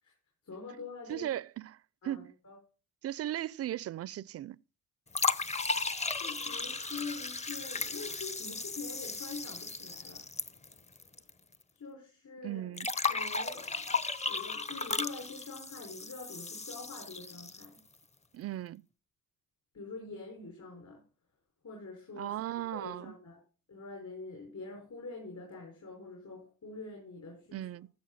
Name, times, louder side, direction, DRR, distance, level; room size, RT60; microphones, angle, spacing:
voice 1, 0.4-1.3 2.0-2.6 6.2-10.2 11.7-12.7 13.1-14.0 14.2-17.8 19.7-21.0 21.6-22.3 22.7-23.4 23.7-27.7, left 3 dB, 55° left, 5.3 m, -45 dB
voice 2, 1.1-1.8 2.0-2.3 3.0-4.6 12.4-12.9 18.3-18.9 22.2-23.1 27.5-27.9, right 13 dB, 45° right, 0.4 m, -37 dB
sound 1, 5.1-11.3 11.5-11.6 12.8-17.8, left 4 dB, 20° left, 0.7 m, -35 dB
14.5 x 6.6 x 4.1 m
supercardioid pair, 70°, 36 cm